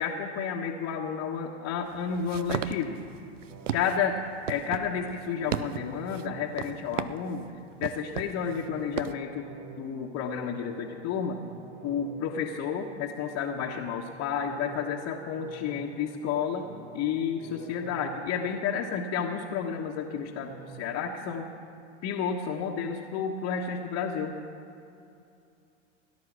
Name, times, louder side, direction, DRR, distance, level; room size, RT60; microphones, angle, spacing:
voice 1, 0.0-3.0 3.7-4.2 4.5-7.5 7.8-9.5 9.8-11.4 11.8-16.7 16.9-21.5 22.0-24.4, left 7 dB, 45° left, -2 dB, 1.4 m, -31 dB
sound 1, 1.9-9.1, right 10 dB, 90° right, 0.6 m, -36 dB
sound 2, 3.5-7.4 8.3-13.4 14.3-19.4 20.3-21.1, right 6 dB, 60° right, 1.9 m, -50 dB
17.5 x 10.5 x 6.1 m, 2.6 s
hypercardioid pair, 95°, 36 cm